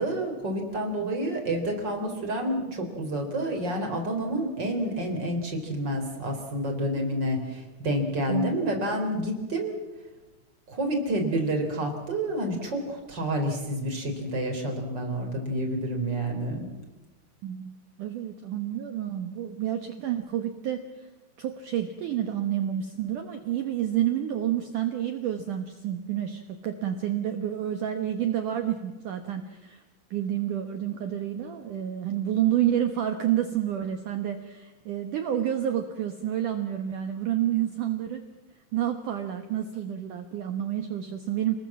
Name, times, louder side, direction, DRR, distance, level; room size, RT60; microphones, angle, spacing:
voice 1, 0.0-9.8 10.7-16.7, right 1 dB, 25° right, 3 dB, 4.1 m, -29 dB
voice 2, 17.4-21.1 21.4-29.8 30.1-38.2 38.7-41.6, right 11 dB, 85° right, 6 dB, 1.8 m, -29 dB
29.0 x 20.0 x 7.5 m, 1.1 s
omnidirectional pair, 5.6 m